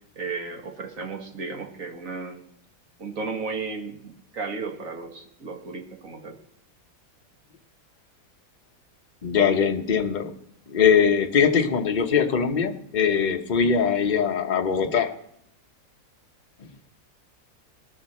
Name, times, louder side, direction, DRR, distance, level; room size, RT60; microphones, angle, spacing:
voice 1, 0.2-2.5 3.0-6.4, right 4 dB, 50° right, 2.1 m, -34 dB
voice 2, 9.2-10.3 10.7-15.2, left 6 dB, 35° left, 0.9 m, -21 dB
18.5 x 12.5 x 4.3 m
omnidirectional pair, 1.9 m